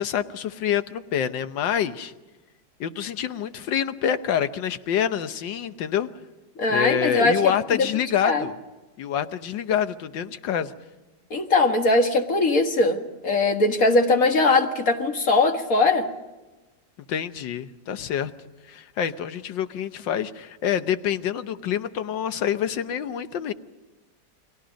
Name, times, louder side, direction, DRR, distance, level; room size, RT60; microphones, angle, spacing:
voice 1, 0.0-2.1 2.8-6.1 6.7-8.6 9.0-10.7 17.1-18.3 18.7-23.5, left 9 dB, 85° left, 11 dB, 1.6 m, -26 dB
voice 2, 6.6-7.9 8.2-8.5 11.3-16.1, left 2 dB, 50° left, 5 dB, 2.1 m, -21 dB
29.5 x 22.0 x 5.2 m, 1.2 s
omnidirectional pair, 1.9 m